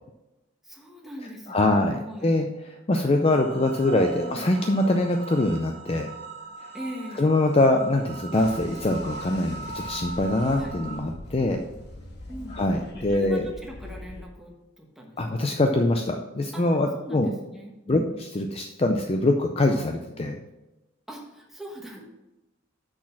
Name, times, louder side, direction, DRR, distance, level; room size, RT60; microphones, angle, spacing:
voice 1, 0.6-2.3 4.2-4.5 6.7-7.3 10.6-10.7 12.3-12.6 13.1-15.4 16.5-16.6 16.9-18.2 21.1-22.0, equal, ahead, -1 dB, 1.2 m, -41 dB
voice 2, 1.5-6.1 7.2-11.6 12.5-13.5 15.2-17.3 17.9-20.4, left 2 dB, 30° left, 4 dB, 0.5 m, -23 dB
sound 1, 3.2-11.0, right 3 dB, 50° right, 1.9 m, -40 dB
sound 2, 8.3-14.2, left 1 dB, 55° left, 1.3 m, -42 dB
6.3 x 6.2 x 5.8 m, 0.99 s
head